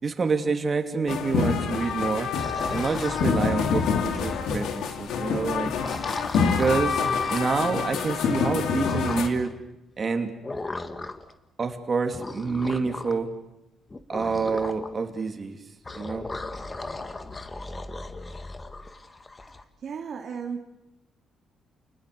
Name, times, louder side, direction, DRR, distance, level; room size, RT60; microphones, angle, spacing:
voice 1, 0.0-2.3 2.7-5.7 6.4-9.5 10.0-10.3 11.6-13.3 14.1-15.6 15.9-16.3, right 4 dB, 40° right, 5 dB, 2.9 m, -27 dB
sound 1, 1.1-9.3, left 6 dB, 80° left, 2.7 m, -27 dB
sound 2, 2.4-4.7 5.7-7.6 8.8-9.5 10.4-11.3 12.1-13.2 13.9-14.9 15.8-19.6, left 2 dB, 25° left, 1.9 m, -37 dB
voice 2, 19.5-20.6, right 6 dB, 60° right, 2 dB, 2.3 m, -36 dB
29.0 x 20.0 x 6.9 m, 0.92 s
cardioid pair, 90°, 0 cm